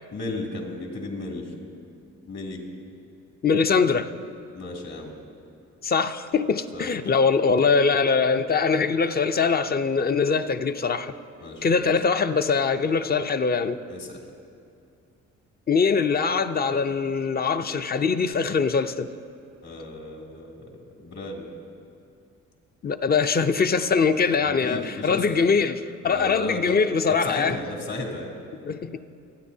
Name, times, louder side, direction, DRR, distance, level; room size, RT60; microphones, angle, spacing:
voice 1, 0.1-1.5 2.3-2.6 4.5-5.2 6.7-6.9 11.4-11.8 13.9-14.2 19.6-21.5 24.4-25.4 26.0-26.7 27.1-28.3, left 2 dB, 60° left, 2.8 m, -34 dB
voice 2, 3.4-4.1 5.8-11.1 11.6-13.8 15.7-19.1 22.8-27.6 28.6-29.0, left 5 dB, 30° left, 0.5 m, -22 dB
27.5 x 9.5 x 2.8 m
cardioid pair, 90°, 30 cm